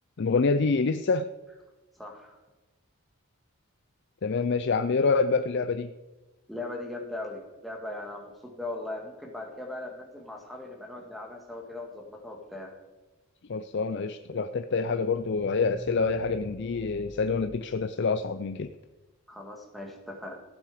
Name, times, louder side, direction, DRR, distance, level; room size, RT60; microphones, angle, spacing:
voice 1, 0.2-1.3 4.2-5.9 13.5-18.7, left 4 dB, 50° left, 10 dB, 0.4 m, -26 dB
voice 2, 2.0-2.4 6.5-12.7 19.3-20.4, left 2 dB, ahead, -1 dB, 1.9 m, -39 dB
sound 1, 14.0-18.6, right 1 dB, 20° right, 4.7 m, -45 dB
15.5 x 8.6 x 4.9 m, 1.2 s
head